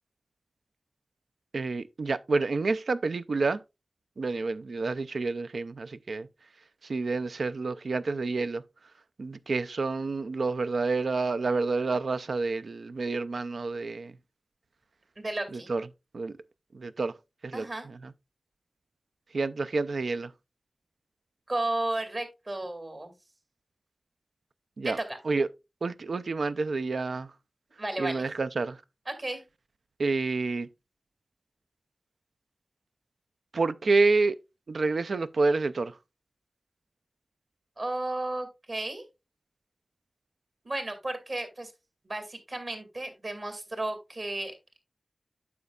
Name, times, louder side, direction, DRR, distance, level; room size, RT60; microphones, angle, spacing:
voice 1, 1.5-3.6 4.2-6.3 6.9-8.6 9.2-14.1 15.7-15.8 16.1-16.3 16.7-17.1 17.4-17.7 19.3-20.3 24.8-25.0 25.3-25.5 25.8-27.3 28.0-28.8 30.0-30.7 33.5-34.4 34.7-35.9, right 3 dB, 80° right, 0.4 m, -28 dB
voice 2, 15.2-15.7 17.5-17.9 21.5-23.1 24.8-25.2 27.8-28.3 29.1-29.4 37.8-39.0 40.6-41.7 42.0-44.5, right 2 dB, 50° right, 2.3 m, -33 dB
9.4 x 6.9 x 2.3 m
wide cardioid pair, 65°, 0 cm